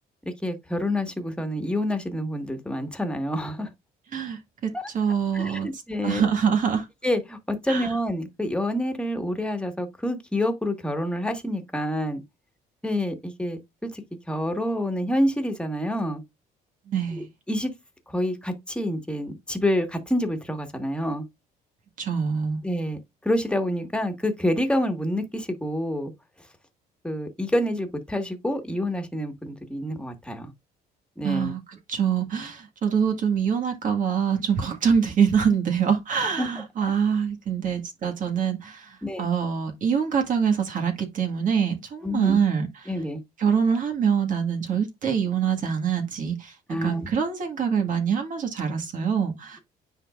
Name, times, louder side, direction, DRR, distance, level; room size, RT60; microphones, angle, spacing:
voice 1, 0.4-3.7 4.7-4.9 5.3-6.3 7.0-12.2 12.8-16.2 17.1-17.7 18.1-21.2 22.6-26.1 27.0-30.5 31.2-31.5 36.4-36.5 39.0-39.3 42.0-42.4 42.9-43.2 46.7-47.1, left 1 dB, 5° left, 1.7 m, -27 dB
voice 2, 4.1-5.7 6.0-6.9 7.7-7.9 16.9-17.3 22.0-22.6 31.2-31.6 31.9-42.9 43.4-49.6, right 7 dB, 50° right, 1.8 m, -25 dB
9.7 x 3.9 x 2.5 m
cardioid pair, 110°, 17 cm